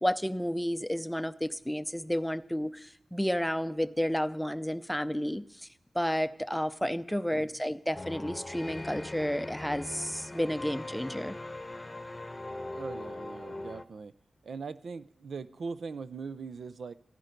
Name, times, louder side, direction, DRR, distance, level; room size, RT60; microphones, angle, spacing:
voice 1, 0.0-5.7 5.9-11.4, equal, 5° left, 12 dB, 0.5 m, -31 dB
sound 1, 7.9-13.8, left 2 dB, 20° left, 0.9 m, -41 dB
voice 2, 12.7-14.1 14.4-16.9, right 5 dB, 85° right, 13 dB, 0.5 m, -41 dB
15.0 x 14.5 x 5.2 m, 0.75 s
wide cardioid pair, 110°, 0 cm